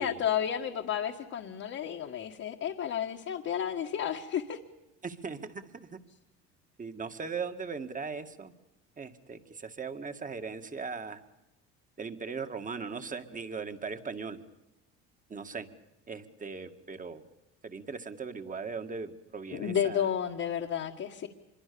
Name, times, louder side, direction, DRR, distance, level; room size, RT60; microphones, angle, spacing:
voice 1, 0.0-4.6 19.5-21.3, left 9 dB, 50° left, 1 dB, 1.9 m, -32 dB
voice 2, 5.0-6.0 6.8-8.5 9.0-11.2 12.0-14.4 15.3-15.7 16.1-17.2 17.6-20.0, right 5 dB, 25° right, 8 dB, 2.1 m, -39 dB
26.0 x 22.5 x 7.1 m, 0.93 s
supercardioid pair, 100°, 29 cm